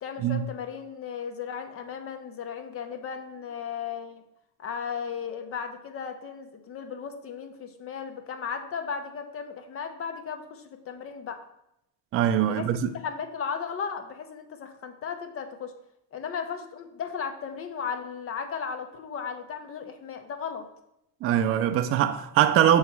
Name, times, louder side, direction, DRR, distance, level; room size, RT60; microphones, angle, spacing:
voice 1, 0.0-4.2 4.6-11.4 12.4-15.7 16.1-20.7, left 6 dB, 30° left, 0.8 m, -35 dB
voice 2, 12.1-12.9 21.2-22.8, right 10 dB, 35° right, 0.4 m, -22 dB
6.7 x 3.2 x 5.9 m
cardioid pair, 135°, 42 cm